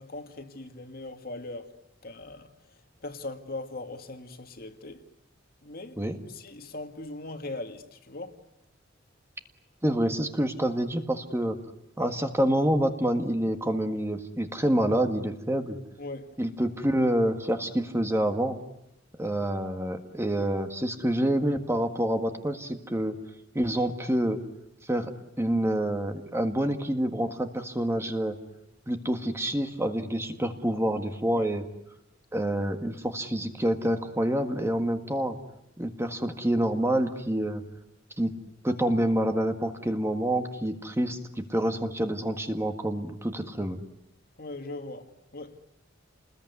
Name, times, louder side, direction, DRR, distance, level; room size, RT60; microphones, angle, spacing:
voice 1, 0.0-1.7 2.0-2.5 3.0-5.0 5.6-6.0 6.3-8.4 16.0-16.3 31.3-31.4 44.4-45.6, left 2 dB, 50° left, 2.1 m, -40 dB
voice 2, 9.8-11.6 12.0-15.8 16.4-18.6 19.2-23.2 23.5-24.4 24.8-25.1 25.4-28.4 28.9-31.6 32.3-35.4 35.8-37.6 38.2-38.3 38.6-43.8, right 1 dB, 15° right, 1.7 m, -27 dB
29.5 x 20.5 x 9.6 m
head